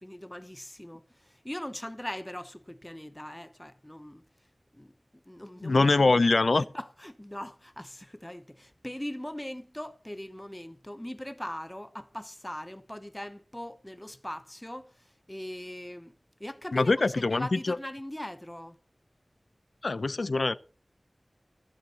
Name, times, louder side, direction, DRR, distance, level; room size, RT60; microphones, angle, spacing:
voice 1, 0.0-4.2 4.7-4.9 5.3-6.2 6.6-16.1 16.4-18.8, left 1 dB, 15° left, 1.0 m, -40 dB
voice 2, 5.6-6.6 16.7-17.8 19.8-20.5, left 3 dB, 80° left, 0.6 m, -23 dB
15.5 x 14.5 x 3.0 m
wide cardioid pair, 45°, 0 cm